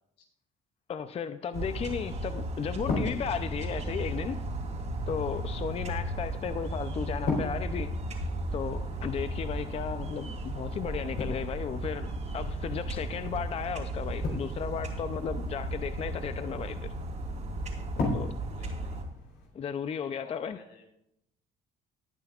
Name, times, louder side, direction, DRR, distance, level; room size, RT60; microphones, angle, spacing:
voice 1, 0.9-4.4 5.1-7.9 8.5-16.9 18.0-18.3 19.5-20.6, left 7 dB, 35° left, 0.5 m, -35 dB
sound 1, 1.5-19.5, left 3 dB, 65° left, 4.0 m, -40 dB
sound 2, 1.5-19.0, right 1 dB, 45° right, 3.1 m, -35 dB
voice 2, 5.3-5.7 8.8-9.2 18.0-19.0 20.0-20.9, left 4 dB, 85° left, 3.8 m, -57 dB
19.5 x 9.1 x 2.4 m
cardioid pair, 110°, 17 cm